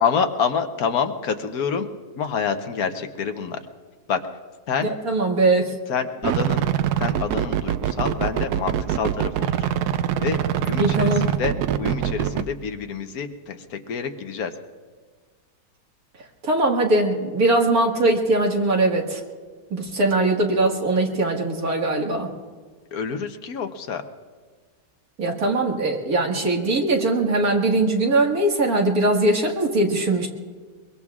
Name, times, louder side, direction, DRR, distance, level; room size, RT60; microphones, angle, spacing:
voice 1, 0.0-1.9 2.2-3.6 4.1-4.2 4.7-4.9 5.9-6.7 7.0-9.7 10.2-14.5 22.9-24.0, left 6 dB, 70° left, 7 dB, 1.4 m, -27 dB
voice 2, 4.8-5.7 10.8-11.2 16.4-19.2 19.7-22.3 25.2-30.3, right 2 dB, 70° right, 0 dB, 2.2 m, -21 dB
sound 1, 6.2-12.4, right 10 dB, 90° right, 1.2 m, -24 dB
23.0 x 22.5 x 2.4 m, 1.5 s
omnidirectional pair, 1.6 m